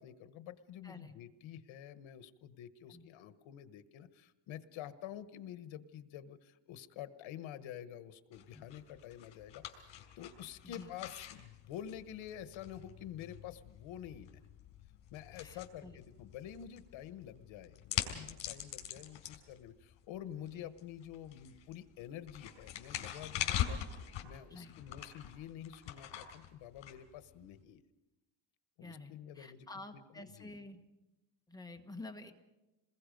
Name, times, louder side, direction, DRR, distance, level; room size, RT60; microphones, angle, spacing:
voice 1, 0.0-14.3 15.1-27.8 28.8-29.7 29.9-30.5, left 10 dB, 85° left, 12 dB, 1.3 m, -48 dB
voice 2, 0.8-1.1 2.9-3.1 8.5-8.6 10.6-11.0 15.3-16.0 20.5-20.7 24.5-24.7 28.8-30.8 31.5-32.3, left 2 dB, 10° left, 4 dB, 1.3 m, -50 dB
sound 1, 8.3-27.6, left 11 dB, 70° left, 3.8 m, -44 dB
28.0 x 21.0 x 5.3 m, 1.0 s
cardioid pair, 150°, 45 cm